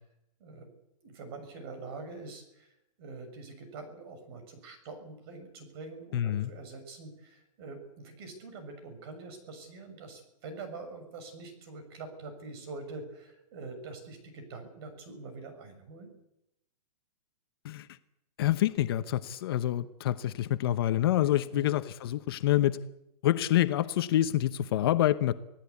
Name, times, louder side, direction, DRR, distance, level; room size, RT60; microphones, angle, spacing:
voice 1, 0.4-0.7 1.0-2.7 3.0-16.1 21.5-21.7, right 3 dB, 40° right, 7 dB, 6.6 m, -45 dB
voice 2, 6.1-6.5 17.6-17.9 18.4-22.8 23.2-25.3, left 13 dB, 40° left, 11 dB, 0.9 m, -27 dB
26.5 x 17.5 x 8.4 m, 0.84 s
hypercardioid pair, 165°, 20 cm